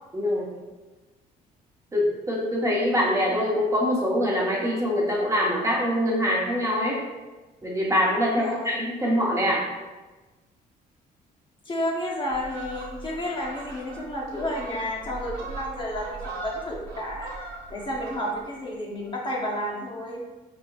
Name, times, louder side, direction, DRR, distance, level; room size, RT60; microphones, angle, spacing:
voice 1, 0.1-0.5 1.9-7.0 7.6-9.6, equal, 15° right, -4 dB, 1.0 m, -24 dB
voice 2, 8.3-8.8 11.6-20.2, left 1 dB, 30° left, -3 dB, 0.9 m, -31 dB
Fowl, 12.3-18.6 19.0-19.2, right 3 dB, 75° right, 1.2 m, -40 dB
5.0 x 2.8 x 2.4 m, 1.2 s
cardioid pair, 110°, 17 cm